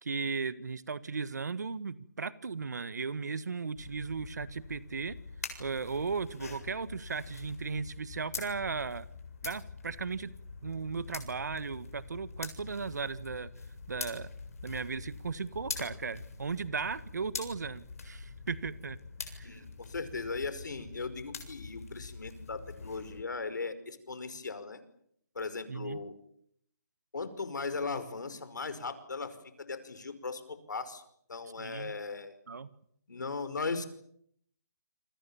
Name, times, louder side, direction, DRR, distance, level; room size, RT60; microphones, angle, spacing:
voice 1, 0.0-5.2 5.6-9.1 9.4-10.3 10.6-13.5 13.9-14.3 14.6-19.0 19.3-19.6 25.7-26.0 31.6-31.9 32.5-32.7, right 5 dB, 65° right, 15 dB, 1.6 m, -36 dB
sound 1, 3.8-23.2, left 4 dB, 50° left, 7.3 m, -45 dB
voice 2, 19.4-24.8 25.4-26.2 27.1-31.0 31.3-32.3 33.1-33.9, left 4 dB, 75° left, 12 dB, 5.4 m, -38 dB
29.0 x 24.0 x 7.2 m, 0.70 s
hypercardioid pair, 175°, 10 cm